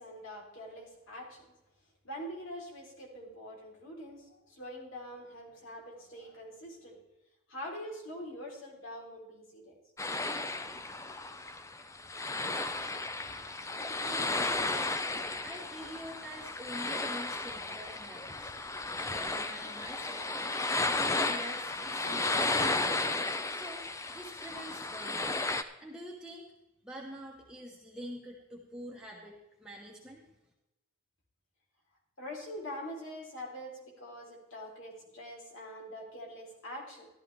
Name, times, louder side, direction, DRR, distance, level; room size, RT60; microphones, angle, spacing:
voice 1, 0.0-1.5 2.0-7.0 7.5-9.8 22.0-22.5 32.2-37.1, equal, 70° left, -1 dB, 3.9 m, -44 dB
sound 1, 10.0-25.6, left 2 dB, 15° left, 0.5 m, -34 dB
voice 2, 13.9-14.9 15.4-18.5 18.9-20.2 20.7-23.0 23.5-23.8 24.1-25.4 25.8-26.5 26.8-30.2, equal, 5° right, -3 dB, 1.2 m, -46 dB
14.0 x 12.5 x 3.5 m, 0.97 s
head